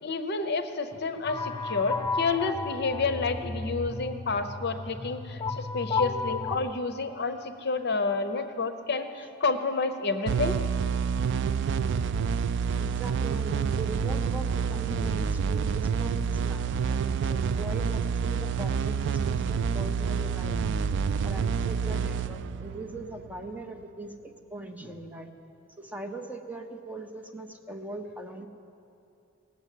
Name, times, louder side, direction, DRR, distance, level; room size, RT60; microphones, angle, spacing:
voice 1, 0.0-10.6, left 4 dB, 55° left, 9 dB, 0.7 m, -29 dB
sound 1, 1.2-6.6, left 4 dB, 20° left, 0.5 m, -33 dB
sound 2, 10.3-23.6, right 6 dB, 65° right, 0.3 m, -28 dB
voice 2, 12.7-20.7 21.2-25.3 25.8-28.5, right 2 dB, 10° right, 3 dB, 0.8 m, -40 dB
18.5 x 7.3 x 8.3 m, 2.7 s
head